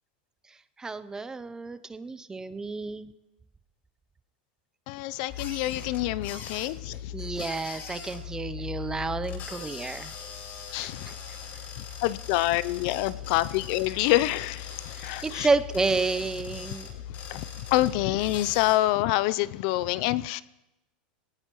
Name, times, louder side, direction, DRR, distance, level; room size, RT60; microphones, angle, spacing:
voice 1, 0.5-3.1 7.1-10.1 10.8-11.1 14.9-16.9, right 3 dB, 10° right, 14 dB, 0.6 m, -30 dB
voice 2, 4.9-7.1 10.7-11.1 11.8-15.5 17.3-17.4 17.7-20.4, left 16 dB, 55° left, 18 dB, 0.4 m, -27 dB
sound 1, 5.3-18.8, left 8 dB, 40° left, 7.6 m, -40 dB
21.0 x 18.0 x 3.0 m, 0.95 s
supercardioid pair, 125°, 5 cm